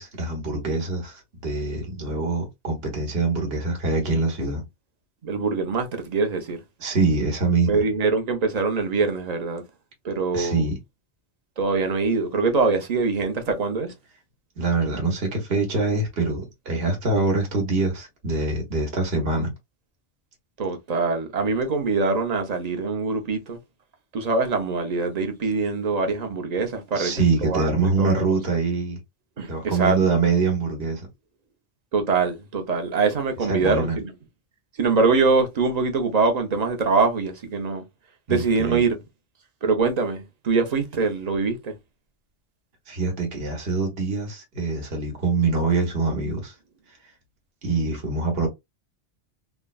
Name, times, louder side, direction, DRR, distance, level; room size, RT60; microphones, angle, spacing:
voice 1, 0.0-4.6 6.8-7.8 10.3-10.8 14.6-19.5 26.9-29.0 29.5-31.1 33.5-34.0 38.3-38.8 42.9-46.5 47.6-48.5, right 3 dB, 70° right, 1.2 m, -24 dB
voice 2, 5.2-6.6 7.7-9.6 10.0-10.6 11.6-13.9 20.6-23.6 24.1-28.2 29.4-30.0 31.9-34.1 34.8-37.8 38.3-39.0 39.6-41.7, right 4 dB, 45° right, 0.6 m, -23 dB
3.4 x 2.1 x 2.2 m
omnidirectional pair, 1.1 m